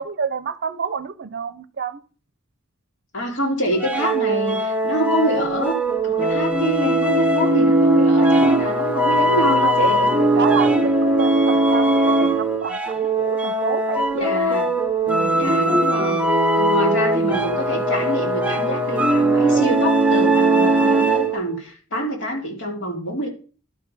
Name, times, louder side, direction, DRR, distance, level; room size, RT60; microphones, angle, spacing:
voice 1, 0.0-2.0 9.1-14.6 15.0-15.4, right 5 dB, 50° right, 0.7 m, -29 dB
voice 2, 3.1-5.8 6.0-10.4 14.1-14.7 15.3-16.2 16.5-23.3, equal, 60° left, 3.2 m, -26 dB
sound 1, 3.8-21.5, right 2 dB, 5° right, 1.0 m, -19 dB
12.0 x 6.1 x 5.4 m
head